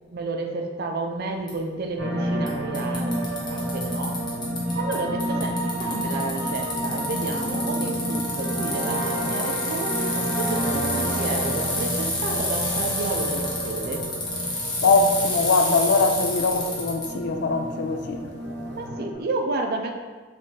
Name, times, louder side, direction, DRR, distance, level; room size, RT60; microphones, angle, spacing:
voice 1, 0.1-4.2 4.7-14.0 18.7-19.9, right 2 dB, 55° right, 3 dB, 0.4 m, -31 dB
Bicycle, 1.5-1.6 2.5-2.6 2.7-4.9 5.2-17.1, left 2 dB, 25° left, 0.9 m, -29 dB
sound 1, 2.0-19.2, right 1 dB, 75° right, 0.8 m, -30 dB
sound 2, 2.2-19.1, equal, 25° right, 0.7 m, -42 dB
voice 2, 14.8-18.2, left 3 dB, 60° left, 6 dB, 0.4 m, -22 dB
5.4 x 2.6 x 3.2 m, 1.4 s
head